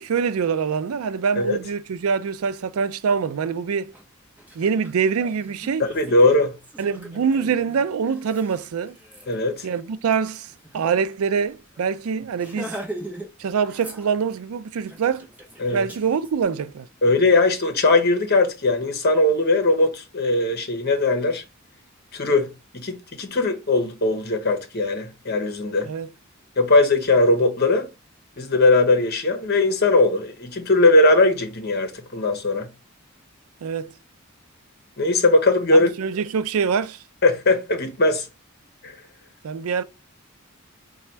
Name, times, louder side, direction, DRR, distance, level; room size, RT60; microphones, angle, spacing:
voice 1, 0.0-3.9 4.6-5.8 6.8-8.9 9.6-12.8 13.4-15.3 15.7-16.9 25.8-26.1 33.6-34.0 35.7-37.0 39.4-39.8, right 6 dB, 85° right, 0.4 m, -24 dB
Laughter, 3.9-4.0 4.4-11.0 11.3-11.5 11.7-11.9 12.3-13.3 13.6-14.4 14.8-16.3, right 1 dB, 10° right, 1.1 m, -40 dB
voice 2, 5.9-6.5 9.3-9.6 15.6-15.9 17.0-21.4 22.1-22.5 22.7-25.9 26.6-27.9 28.4-32.7 35.0-35.9 37.2-38.2 38.8-39.0, left 2 dB, 50° left, 0.9 m, -19 dB
4.0 x 2.3 x 4.4 m
head